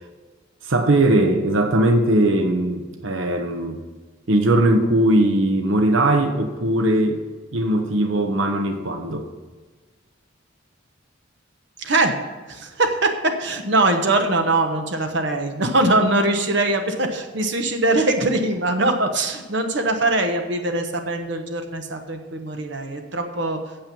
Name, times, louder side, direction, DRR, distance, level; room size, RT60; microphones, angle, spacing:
voice 1, 0.6-3.8 4.3-7.2 7.5-9.3, right 1 dB, 85° right, 6 dB, 1.0 m, -19 dB
voice 2, 11.8-12.2 12.5-23.6, right 2 dB, 60° right, 5 dB, 1.1 m, -22 dB
8.8 x 7.4 x 7.0 m, 1.3 s
head